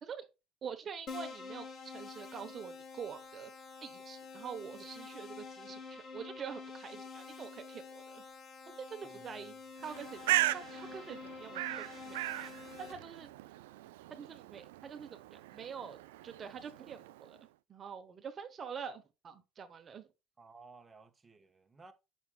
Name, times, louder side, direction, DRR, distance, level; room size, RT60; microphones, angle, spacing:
voice 1, 0.6-3.5 3.8-8.2 8.7-9.5 9.8-12.5 12.8-13.3 14.1-16.0 16.2-17.4 17.7-20.1, right 7 dB, 40° right, 1.0 m, -46 dB
Keyboard (musical), 1.1-12.9, left 4 dB, 40° left, 1.7 m, -48 dB
voice 2, 9.0-9.5 20.4-21.9, right 3 dB, 20° right, 1.2 m, -57 dB
Bird, 9.8-17.4, right 16 dB, 85° right, 0.3 m, -38 dB
6.9 x 6.2 x 2.2 m
hypercardioid pair, 75°, 0 cm